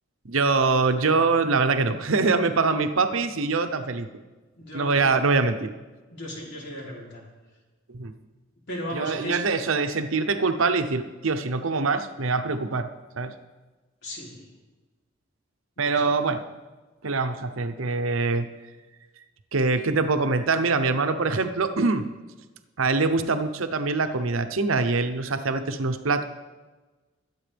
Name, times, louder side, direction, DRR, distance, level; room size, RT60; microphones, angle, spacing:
voice 1, 0.2-4.1 4.7-5.7 7.9-8.1 8.9-12.9 13.2-13.3 15.8-16.4 17.0-18.5 19.5-22.1 22.8-26.2, right 4 dB, 85° right, 9 dB, 0.8 m, -24 dB
voice 2, 4.6-5.2 6.1-7.3 8.7-9.4 14.0-14.5 15.8-15.9, equal, 60° left, -3 dB, 3.4 m, -36 dB
22.0 x 8.3 x 3.4 m, 1.3 s
head